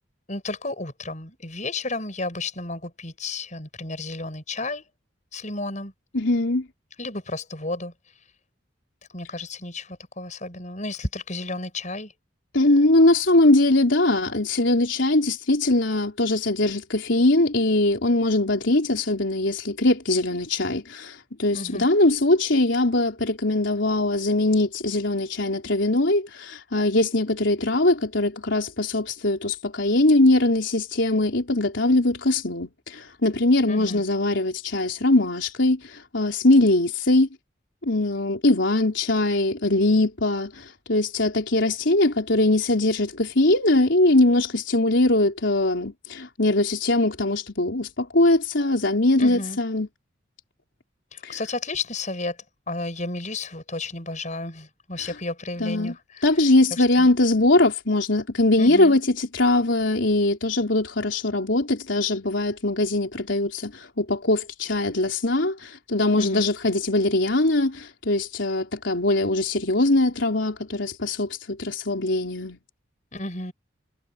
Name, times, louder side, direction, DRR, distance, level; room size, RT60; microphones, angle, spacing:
voice 1, 0.3-4.9 5.3-5.9 7.0-7.9 9.1-12.1 21.5-21.9 33.7-34.0 49.2-49.6 51.1-52.4 52.7-56.3 56.7-57.1 58.6-59.0 66.2-66.5 73.1-73.5, left 2 dB, 40° left, 7.3 m, -32 dB
voice 2, 6.1-6.7 12.5-37.3 37.8-49.9 51.2-51.4 55.0-55.1 55.6-55.9 56.2-72.6, left 2 dB, 70° left, 3.9 m, -21 dB
head